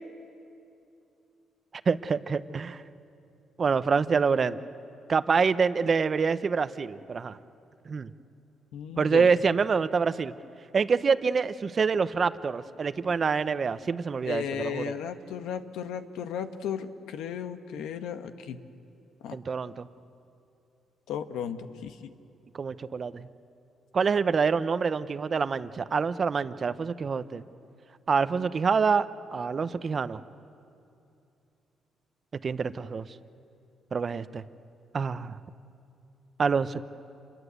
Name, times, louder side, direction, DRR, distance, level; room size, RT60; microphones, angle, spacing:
voice 1, 1.9-2.8 3.6-4.6 5.1-7.4 7.9-8.1 9.0-10.3 10.7-14.9 19.3-19.9 22.6-23.3 23.9-27.4 28.1-29.1 29.3-30.2 32.4-33.1 33.9-34.4 34.9-35.4 36.4-36.8, right 5 dB, 40° right, 13 dB, 0.8 m, -26 dB
voice 2, 8.7-9.3 14.2-18.6 19.2-19.4 21.1-22.1, left 8 dB, 85° left, 8 dB, 1.2 m, -35 dB
27.0 x 21.5 x 8.2 m, 2.6 s
cardioid pair, 90°, 0 cm